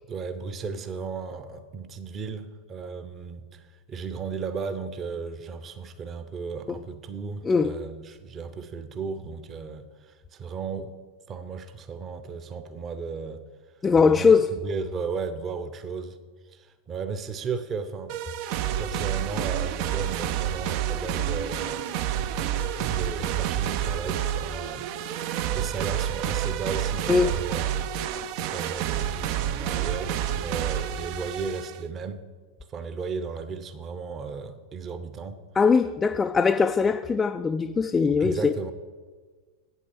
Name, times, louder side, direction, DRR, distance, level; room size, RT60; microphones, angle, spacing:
voice 1, 0.1-10.9 11.3-13.4 14.0-16.2 16.5-18.2 18.6-21.8 22.7-27.9 28.4-32.3 32.7-35.4 38.2-38.7, right 5 dB, 25° right, 0.9 m, -35 dB
voice 2, 13.8-14.5 27.1-27.4 35.6-38.5, left 5 dB, 15° left, 0.3 m, -21 dB
sound 1, 18.1-31.8, right 10 dB, 45° right, 0.5 m, -29 dB
sound 2, 21.1-22.4 23.0-23.9, right 3 dB, 75° right, 1.3 m, -44 dB
8.4 x 8.4 x 7.0 m
figure-of-eight pair, 90°, 0 cm